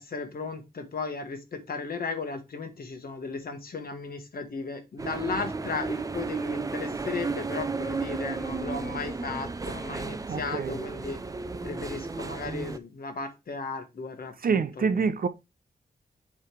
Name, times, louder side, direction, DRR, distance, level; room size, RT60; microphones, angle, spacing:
voice 1, 0.0-11.2 11.6-15.0, left 4 dB, 60° left, 1.5 m, -35 dB
sound 1, 5.0-12.8, right 3 dB, 20° right, 0.4 m, -33 dB
voice 2, 10.3-10.8 14.4-15.3, right 5 dB, 60° right, 0.7 m, -26 dB
7.5 x 3.3 x 4.6 m
wide cardioid pair, 165°, 17 cm